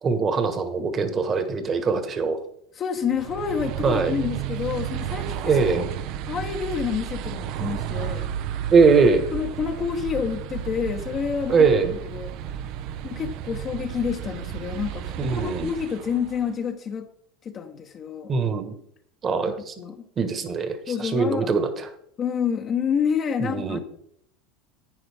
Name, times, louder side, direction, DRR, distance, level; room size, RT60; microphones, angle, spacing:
voice 1, 0.0-2.4 3.8-4.2 5.5-5.9 8.7-9.2 11.5-11.9 15.2-15.7 18.3-18.7 19.2-19.7 20.2-21.9 23.4-23.8, right 4 dB, 35° right, 9 dB, 1.5 m, -21 dB
voice 2, 2.7-5.7 6.2-8.3 9.3-11.8 12.1-12.3 13.0-17.1 17.4-18.3 19.5-20.1 20.9-21.5 22.2-23.8, left 7 dB, 40° left, 3 dB, 1.0 m, -28 dB
sound 1, 3.1-16.6, right 10 dB, 60° right, 0.6 m, -33 dB
11.0 x 9.1 x 3.5 m, 0.70 s
hypercardioid pair, 90°, 0 cm